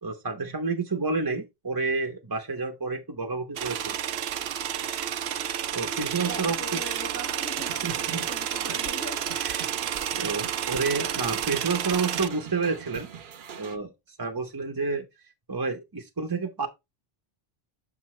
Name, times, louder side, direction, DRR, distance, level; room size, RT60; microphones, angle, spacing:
voice 1, 0.0-4.0 5.7-6.6 7.8-8.3 9.4-9.7 10.2-13.1 13.6-13.9 14.2-15.1 15.5-16.7, right 4 dB, 25° right, 0.7 m, -29 dB
sound 1, 3.6-12.3, right 9 dB, 85° right, 0.9 m, -30 dB
voice 2, 6.3-9.3, left 1 dB, 15° left, 0.6 m, -41 dB
sound 2, 7.4-13.8, right 7 dB, 60° right, 0.8 m, -43 dB
6.7 x 6.0 x 3.1 m
omnidirectional pair, 1.0 m